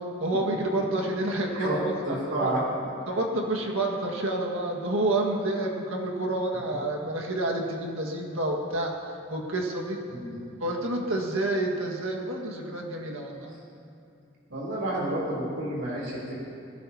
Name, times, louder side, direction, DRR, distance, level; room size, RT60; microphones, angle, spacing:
voice 1, 0.2-1.9 2.4-2.5 3.1-8.9 9.3-10.0 10.6-13.5, right 1 dB, 90° right, 0 dB, 1.8 m, -28 dB
voice 2, 2.1-2.6 10.1-10.5 14.5-16.4, right 1 dB, 65° right, -6 dB, 3.5 m, -30 dB
21.0 x 16.5 x 2.9 m, 2.6 s
head